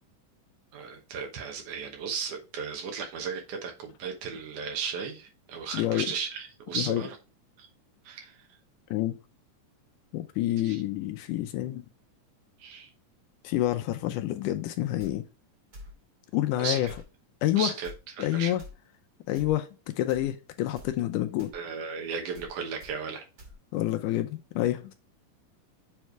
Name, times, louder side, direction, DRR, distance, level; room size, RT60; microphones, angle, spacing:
voice 1, 0.7-7.2 7.6-7.7 8.1-8.5 10.6-10.8 12.6-12.9 16.6-16.9 17.6-17.9 18.2-18.5 21.5-23.2, right 5 dB, 70° right, 2.5 m, -35 dB
voice 2, 5.7-6.1 6.7-7.0 8.9-9.2 10.1-11.8 13.4-15.2 16.3-16.9 17.4-17.7 18.2-18.6 19.3-19.7 20.0-21.5 23.7-24.9, left 14 dB, 80° left, 2.0 m, -28 dB
sound 1, 15.0-15.1 15.7-15.9 16.9-17.1 17.8-18.0 18.6-18.7 19.3-19.5 20.1-20.3 20.8-20.9 21.4-21.6 22.3-22.5 22.8-22.9 23.4-23.5, equal, 40° right, 1.9 m, -46 dB
7.2 x 3.2 x 4.5 m
omnidirectional pair, 3.8 m